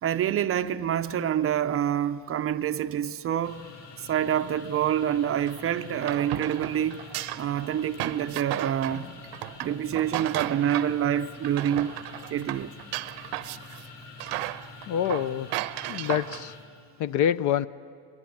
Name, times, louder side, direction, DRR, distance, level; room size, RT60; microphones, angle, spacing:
voice 1, 0.0-3.7 4.0-7.0 7.4-9.1 9.6-11.9 12.3-12.7, right 10 dB, 30° right, 0.6 m, -27 dB
sound 1, 3.4-16.7, left 4 dB, 70° left, 6.8 m, -46 dB
sound 2, 5.4-11.0 11.3-13.9 14.2-16.5, right 16 dB, 50° right, 0.8 m, -35 dB
voice 2, 14.9-15.5 15.9-16.5 17.0-17.7, left 9 dB, 40° left, 0.5 m, -26 dB
22.0 x 22.0 x 9.8 m
supercardioid pair, 125°, 50 cm